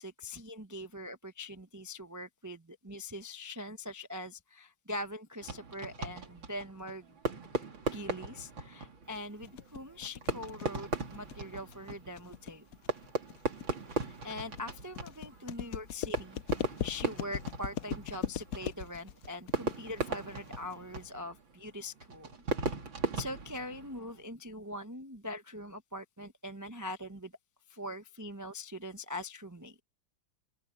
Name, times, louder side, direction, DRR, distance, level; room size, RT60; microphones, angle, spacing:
voice 1, 0.0-7.0 7.8-12.6 13.9-22.3 23.2-27.3 27.7-29.8, left 1 dB, 25° right, 0.3 m, -42 dB
Fireworks, 5.4-24.2, right 3 dB, 60° right, 3.6 m, -38 dB
sound 1, 9.1-21.1, left 10 dB, 70° left, 0.8 m, -40 dB
open air
omnidirectional pair, 2.4 m